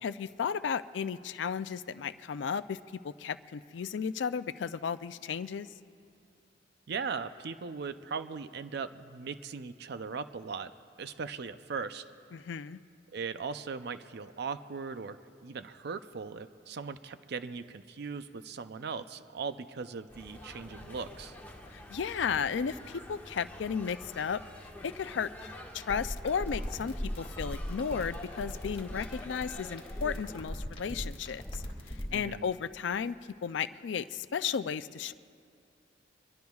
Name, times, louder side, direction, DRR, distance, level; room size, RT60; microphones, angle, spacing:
voice 1, 0.0-5.7 12.3-12.8 21.7-33.2 33.4-35.1, left 6 dB, 70° left, 13 dB, 0.4 m, -34 dB
voice 2, 6.9-10.7 11.0-12.0 13.1-21.4 32.1-32.5, right 5 dB, 60° right, 11 dB, 0.5 m, -39 dB
sound 1, 20.1-30.4, left 1 dB, 10° left, 1.6 m, -48 dB
sound 2, 25.9-32.1, equal, 30° left, 2.2 m, -38 dB
24.5 x 22.0 x 2.4 m, 2.4 s
head